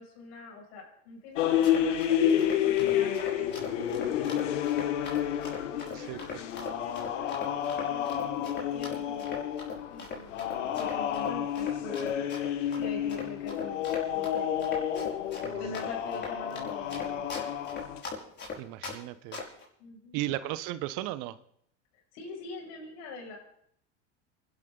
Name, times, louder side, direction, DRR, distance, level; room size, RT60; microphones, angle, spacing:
voice 1, 0.0-2.0 2.6-5.1 5.7-9.3 9.9-12.2 12.8-14.6 15.6-17.6 19.8-20.2 21.9-23.4, left 3 dB, 65° left, 0 dB, 6.4 m, -44 dB
sound 1, 1.4-18.0, left 10 dB, 85° left, 1.5 m, -30 dB
Run, 1.4-19.0 19.3-19.6, left 4 dB, 30° left, 5.8 m, -40 dB
voice 2, 5.9-6.4 15.4-15.8 18.6-19.4 20.1-21.4, right 15 dB, 60° right, 15 dB, 1.0 m, -36 dB
28.5 x 12.0 x 3.9 m, 0.67 s
supercardioid pair, 105°, 36 cm